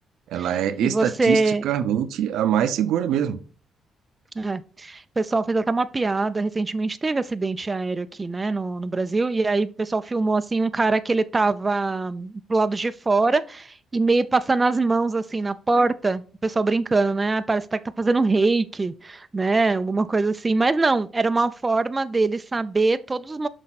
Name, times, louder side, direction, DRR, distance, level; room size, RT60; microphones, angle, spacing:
voice 1, 0.3-3.4, right 10 dB, 85° right, 0.7 m, -24 dB
voice 2, 0.8-1.6 4.4-23.5, right 3 dB, 25° right, 0.5 m, -23 dB
6.3 x 4.4 x 4.1 m
cardioid pair, 90°, 0 cm